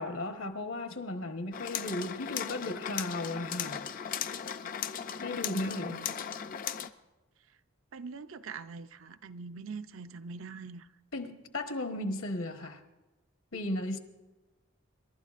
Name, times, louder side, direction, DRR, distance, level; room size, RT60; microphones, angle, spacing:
voice 1, 0.0-3.8 5.2-6.0 11.1-12.8 13.5-14.0, left 1 dB, 70° left, 1.2 m, -35 dB
sound 1, 1.5-6.9, left 8 dB, 40° left, 0.4 m, -37 dB
voice 2, 5.6-6.1 7.9-10.9, right 4 dB, 65° right, 0.5 m, -43 dB
28.0 x 12.0 x 2.5 m
head